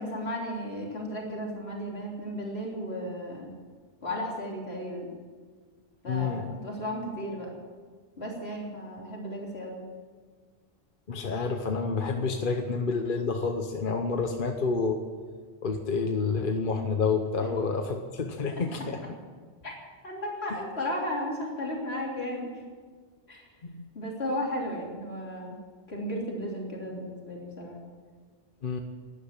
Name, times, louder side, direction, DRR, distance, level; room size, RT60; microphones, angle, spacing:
voice 1, 0.0-3.5 4.0-5.1 6.0-7.5 8.2-9.8 18.6-18.7 19.6-19.7 20.0-22.6 23.3-23.5 23.9-25.6 25.9-27.8, equal, 80° left, -2 dB, 3.7 m, -34 dB
voice 2, 6.1-6.5 11.1-15.0 15.6-19.0 23.6-23.8 28.6-28.8, left 4 dB, 55° left, 5 dB, 1.1 m, -29 dB
12.0 x 11.5 x 8.8 m, 1.5 s
omnidirectional pair, 1.1 m